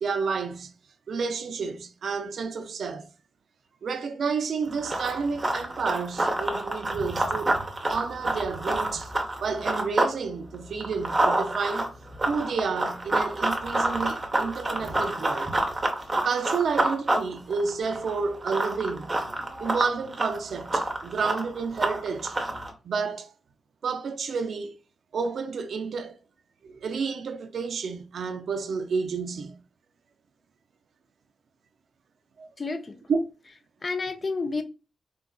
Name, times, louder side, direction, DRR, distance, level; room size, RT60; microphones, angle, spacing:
voice 1, 0.0-0.7 1.1-3.1 3.8-7.6 7.9-9.1 9.4-11.9 12.3-15.5 16.2-19.2 19.6-22.4 22.8-23.3 23.8-24.8 25.1-26.2 26.6-29.6 32.4-32.5 33.1-33.2 34.5-34.6, right 5 dB, 70° right, 0.4 m, -30 dB
Run, 4.7-10.2 10.5-22.7, right 2 dB, 25° right, 0.7 m, -28 dB
voice 2, 32.6-33.0 33.8-34.6, left 4 dB, 35° left, 0.4 m, -30 dB
3.7 x 2.4 x 2.3 m
cardioid pair, 90°, 0 cm